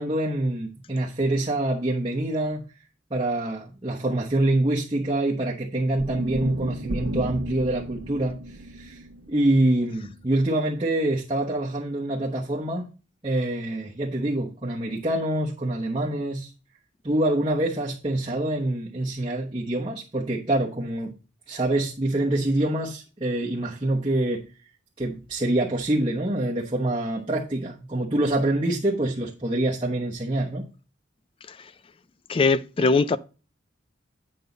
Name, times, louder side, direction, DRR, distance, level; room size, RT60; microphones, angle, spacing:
voice 1, 0.0-2.6 3.1-9.0 9.3-12.9 13.2-16.5 17.0-21.1 21.5-24.5 25.0-30.7, right 1 dB, 25° right, 1.1 m, -25 dB
sound 1, 6.0-10.2, right 1 dB, 80° right, 1.1 m, -34 dB
voice 2, 32.3-33.2, left 4 dB, 30° left, 0.3 m, -20 dB
9.2 x 5.5 x 4.0 m
head